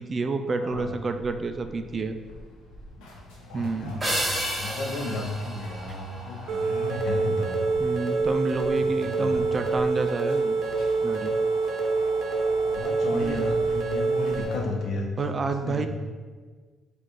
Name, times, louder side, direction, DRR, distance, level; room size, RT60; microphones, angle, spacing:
voice 1, 0.0-2.2 3.5-4.0 5.9-6.0 7.8-10.6 11.0-11.3 13.1-13.5 15.2-15.9, right 3 dB, 40° right, 8 dB, 0.3 m, -29 dB
voice 2, 0.6-0.9 3.5-8.0 9.2-9.4 12.7-15.4 15.6-15.9, left 2 dB, 65° left, 2 dB, 0.8 m, -33 dB
sound 1, 0.7-14.6, equal, 90° left, 0.9 m, -44 dB
sound 2, 4.0-6.6, equal, 15° right, 1.5 m, -31 dB
sound 3, 6.5-14.4, right 3 dB, 60° right, 0.7 m, -26 dB
4.3 x 2.4 x 4.7 m, 1.5 s
cardioid pair, 75°, 0 cm